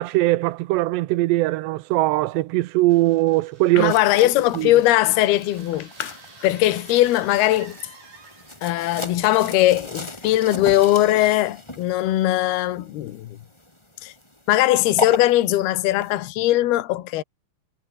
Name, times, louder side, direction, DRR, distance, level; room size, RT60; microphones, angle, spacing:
voice 1, 0.0-4.0 4.6-4.7, right 19 dB, 80° right, 2.6 m, -20 dB
sound 1, 2.9-8.8, right 4 dB, 55° right, 10.0 m, -49 dB
voice 2, 3.8-7.8 8.6-13.4 14.0-14.1 14.5-17.2, left 15 dB, 65° left, 3.2 m, -20 dB
sound 2, 3.9-16.2, left 1 dB, 5° left, 3.1 m, -37 dB
omnidirectional pair, 5.6 m